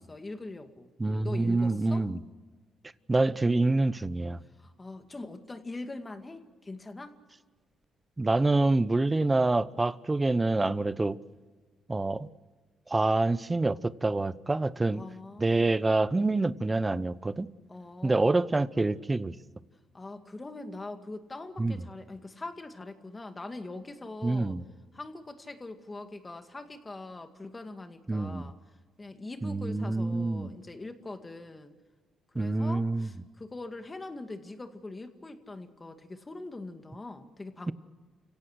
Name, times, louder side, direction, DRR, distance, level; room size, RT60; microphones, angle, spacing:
voice 1, 0.0-0.9 1.2-2.1 4.6-7.2 14.9-15.7 17.7-18.4 19.9-24.6 24.9-28.6 29.0-31.8 32.3-37.7, left 2 dB, 20° left, 7 dB, 2.2 m, -42 dB
voice 2, 1.0-2.2 3.1-4.4 8.2-11.2 11.9-12.3 12.9-15.0 15.4-17.5 18.0-19.4 21.6-21.8 24.2-24.6 28.1-28.5 29.4-30.5 32.3-33.1, right 2 dB, 20° right, 16 dB, 0.9 m, -26 dB
29.5 x 17.0 x 6.5 m, 1.4 s
cardioid pair, 90°, 0 cm